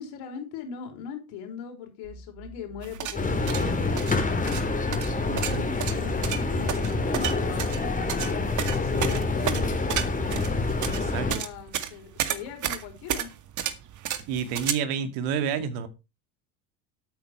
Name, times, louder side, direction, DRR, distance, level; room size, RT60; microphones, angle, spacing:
voice 1, 0.0-4.6 5.2-9.6 10.9-13.3, left 8 dB, 65° left, 5.1 m, -40 dB
sound 1, 2.0-5.1 5.5-8.5, right 2 dB, 90° right, 5.2 m, -45 dB
sound 2, 2.8-14.7, right 10 dB, 45° right, 1.9 m, -32 dB
sound 3, 3.1-11.3, left 3 dB, 20° left, 3.2 m, -27 dB
voice 2, 5.3-5.6 10.6-11.4 14.3-15.9, right 7 dB, 65° right, 2.3 m, -30 dB
12.0 x 9.0 x 4.7 m
hypercardioid pair, 75°, 43 cm